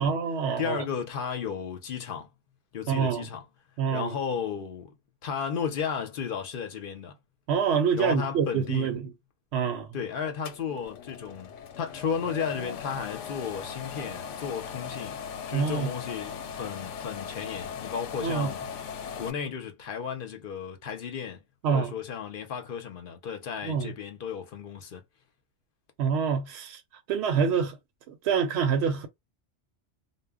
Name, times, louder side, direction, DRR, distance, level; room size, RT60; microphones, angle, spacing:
voice 1, 0.0-0.8 2.9-3.2 3.8-4.1 7.5-9.0 9.5-9.9 15.5-15.9 18.2-18.5 21.6-21.9 23.6-23.9 26.0-26.8 27.1-27.8 28.1-29.1, right 6 dB, 70° right, 0.8 m, -26 dB
voice 2, 0.6-2.3 2.7-3.5 3.9-4.9 5.2-7.2 7.9-8.9 9.9-15.2 15.5-18.6 19.2-21.4 21.7-25.0, left 7 dB, 55° left, 0.7 m, -34 dB
sound 1, 10.4-19.3, left 7 dB, 85° left, 0.9 m, -39 dB
2.1 x 2.1 x 3.4 m
omnidirectional pair, 1.2 m